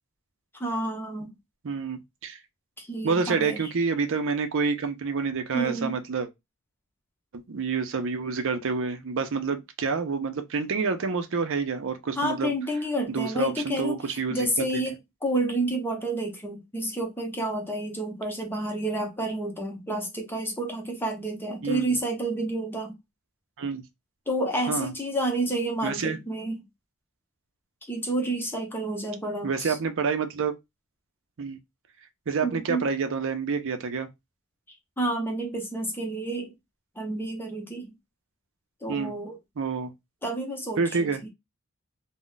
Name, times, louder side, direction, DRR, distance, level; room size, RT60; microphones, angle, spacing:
voice 1, 0.5-1.3 2.8-3.7 5.5-6.0 12.2-14.9 15.2-23.0 24.3-26.6 27.9-29.8 32.4-32.9 35.0-36.5 37.0-37.9 38.8-39.4 40.2-41.3, right 1 dB, 10° left, 0.7 m, -30 dB
voice 2, 1.6-2.4 3.0-6.3 7.3-12.5 13.1-14.7 21.6-22.0 23.6-23.8 24.7-24.9 25.8-26.2 29.4-30.5 31.4-31.6 32.3-34.1 38.9-39.1 39.6-39.9 40.8-41.2, right 5 dB, 60° right, 0.5 m, -28 dB
2.3 x 2.1 x 3.8 m
head